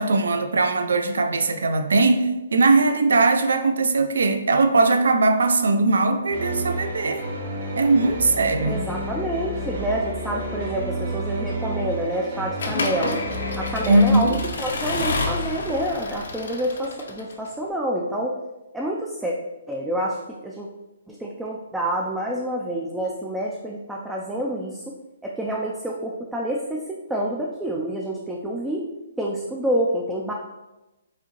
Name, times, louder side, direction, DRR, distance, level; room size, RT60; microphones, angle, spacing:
voice 1, 0.0-7.2 7.8-8.8 13.9-14.4, right 3 dB, 80° right, 8 dB, 0.5 m, -20 dB
sound 1, 6.3-14.3, equal, 55° right, 1.3 m, -31 dB
voice 2, 8.6-13.2 13.6-18.4 18.7-19.4 19.7-20.7 21.1-24.9 25.2-28.9 29.2-30.3, right 1 dB, 5° right, -3 dB, 0.3 m, -28 dB
Accelerating revving vroom / Mechanisms, 12.6-17.5, left 3 dB, 75° left, 0.7 m, -29 dB
4.8 x 2.8 x 3.0 m, 1.0 s
hypercardioid pair, 160°, 0 cm